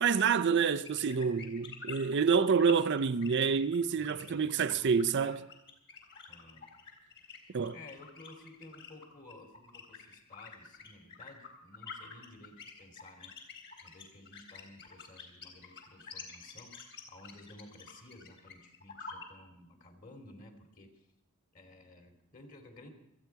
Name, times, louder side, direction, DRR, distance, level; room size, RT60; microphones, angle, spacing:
voice 1, 0.0-5.4 7.5-7.8, right 6 dB, 50° right, 0.5 m, -28 dB
sound 1, 0.8-19.2, left 6 dB, 55° left, 3.8 m, -48 dB
voice 2, 4.0-4.9 6.3-6.7 7.7-13.5 13.8-16.8 17.1-21.1 21.5-22.9, left 2 dB, 40° left, 2.6 m, -54 dB
28.0 x 9.5 x 4.6 m
head